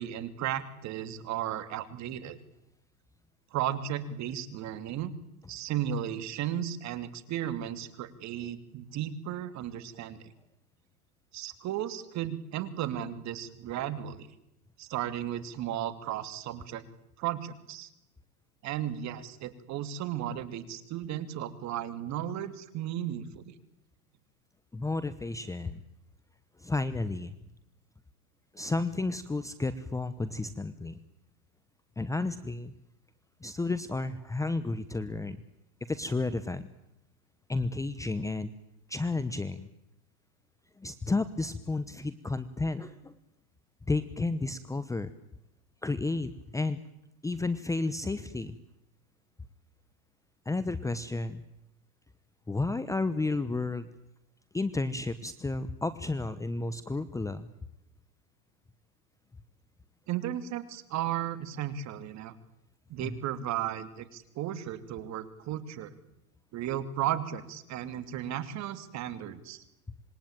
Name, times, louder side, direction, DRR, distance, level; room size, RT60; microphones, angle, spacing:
voice 1, 0.0-2.4 3.5-5.1 5.5-10.3 11.3-14.3 14.8-16.8 17.2-17.9 18.6-23.5 60.1-62.3 62.9-65.9 66.5-69.6, right 11 dB, 40° right, 12 dB, 2.9 m, -35 dB
voice 2, 24.7-25.8 26.6-27.3 28.5-31.0 32.0-32.7 33.4-35.4 35.9-36.7 37.5-38.5 38.9-39.7 40.8-43.1 43.9-45.1 45.8-46.8 47.2-48.6 50.4-51.4 52.5-53.9 54.5-57.5 63.0-63.2, left 3 dB, 5° left, 14 dB, 1.0 m, -32 dB
26.5 x 22.0 x 9.1 m, 0.83 s
hypercardioid pair, 120°, 44 cm